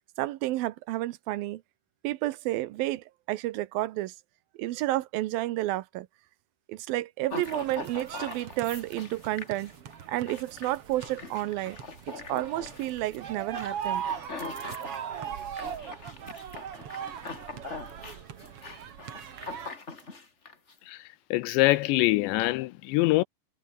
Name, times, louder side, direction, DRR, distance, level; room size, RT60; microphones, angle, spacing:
voice 1, 0.2-1.6 2.0-4.1 4.6-6.1 6.7-9.7 10.1-11.8 12.1-14.0, right 16 dB, 75° right, 2.2 m, -31 dB
sound 1, 7.3-20.7, left 4 dB, 30° left, 1.2 m, -42 dB
sound 2, 7.4-19.7, right 8 dB, 55° right, 1.6 m, -39 dB
voice 2, 20.8-23.2, left 19 dB, 80° left, 2.8 m, -24 dB
omnidirectional pair, 5.2 m